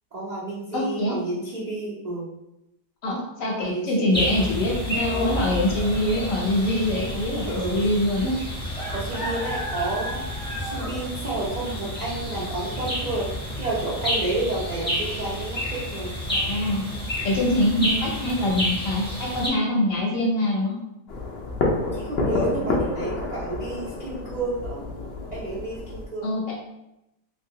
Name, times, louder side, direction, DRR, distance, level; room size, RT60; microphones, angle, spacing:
voice 1, 0.1-2.3 3.5-4.4 7.4-7.8 8.9-10.2 10.6-13.3 13.6-16.1 21.9-24.8 25.3-26.4, right 2 dB, 70° right, -8 dB, 0.4 m, -30 dB
voice 2, 0.7-1.1 3.0-8.3 16.3-16.8 17.2-20.8 26.2-26.4, left 1 dB, 60° left, -2 dB, 1.0 m, -24 dB
sound 1, 4.1-19.5, equal, 5° left, 0.5 m, -30 dB
sound 2, 21.1-26.0, left 3 dB, 90° left, 0.5 m, -29 dB
3.0 x 2.8 x 2.7 m, 0.88 s
omnidirectional pair, 1.8 m